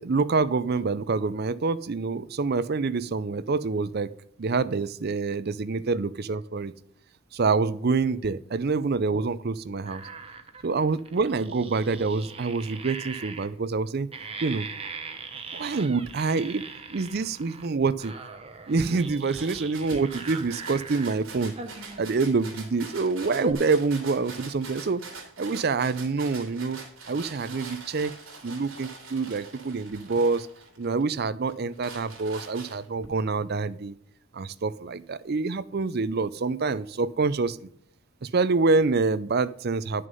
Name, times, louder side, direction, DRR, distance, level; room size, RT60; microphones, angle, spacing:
voice 1, 0.0-4.1 4.4-6.7 7.3-10.0 10.6-14.1 14.4-14.7 15.5-16.6 16.9-18.1 18.7-21.5 22.0-25.0 25.4-26.8 27.1-28.2 28.4-30.5 30.8-33.9 34.3-37.7 38.2-40.1, right 4 dB, 45° right, 15 dB, 0.5 m, -26 dB
sound 1, 9.8-13.5 14.1-17.7 18.0-21.2 21.6-22.3 22.9-23.0 23.4-23.5, right 4 dB, 25° right, 1.0 m, -40 dB
sound 2, 19.4-31.0 31.5-33.1, right 4 dB, 60° right, 2.8 m, -43 dB
11.0 x 6.6 x 5.3 m, 0.67 s
head